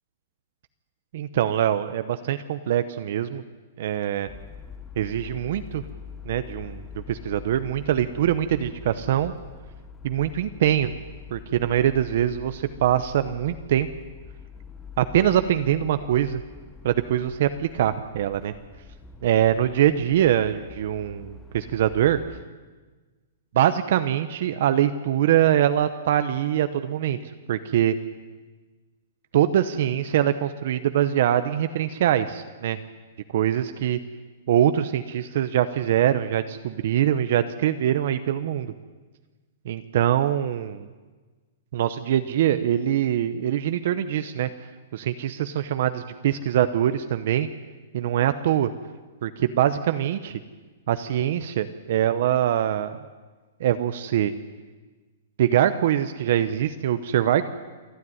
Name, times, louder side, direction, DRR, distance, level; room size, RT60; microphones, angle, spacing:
voice 1, 1.1-3.4 3.8-4.3 5.0-5.8 6.2-9.3 10.0-10.9 11.3-13.9 15.0-16.4 16.8-18.5 19.2-22.2 23.5-27.2 27.5-27.9 29.3-32.8 33.3-34.0 34.5-38.7 39.7-40.9 41.7-44.5 44.9-47.5 47.9-48.7 49.2-50.4 50.9-53.0 53.6-54.3 55.4-57.4, right 11 dB, 45° right, 11 dB, 0.8 m, -23 dB
sound 1, 4.2-22.4, left 5 dB, 5° left, 0.7 m, -44 dB
28.0 x 10.5 x 9.7 m, 1.3 s
hypercardioid pair, 175°, 0 cm